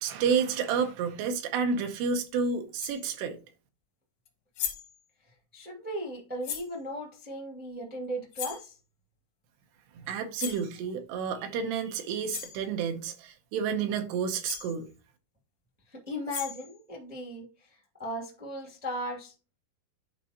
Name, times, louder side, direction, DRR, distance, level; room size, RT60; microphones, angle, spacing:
voice 1, 0.0-3.4 10.0-14.9, right 6 dB, 80° right, 2.9 m, -30 dB
sound 1, 2.1-2.2 2.7-3.1 4.3-4.4 4.5-5.0 6.4-6.7 8.3-8.7 10.3-10.7 11.9-12.0 12.3-12.6 14.1-14.2 14.4-14.7 16.1-16.7, left 8 dB, 70° left, 1.6 m, -37 dB
voice 2, 5.5-8.8 15.9-19.3, equal, 15° right, 0.3 m, -37 dB
11.0 x 4.5 x 2.9 m
omnidirectional pair, 4.9 m